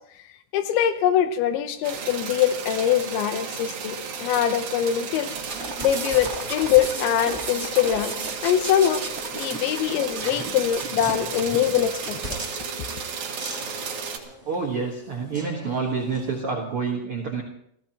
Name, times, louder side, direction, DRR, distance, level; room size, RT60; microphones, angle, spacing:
voice 1, 0.5-5.3 5.8-8.1 8.4-9.0 9.3-12.2, left 10 dB, 80° left, 9 dB, 3.1 m, -23 dB
sound 1, 1.8-14.2, right 6 dB, 55° right, 2.2 m, -33 dB
sound 2, 5.4-12.3, right 2 dB, 20° right, 1.7 m, -36 dB
sound 3, 11.0-16.4, equal, 10° left, 2.1 m, -41 dB
voice 2, 14.5-17.4, right 4 dB, 75° right, -1 dB, 1.3 m, -28 dB
29.0 x 15.5 x 3.0 m, 0.72 s
omnidirectional pair, 5.4 m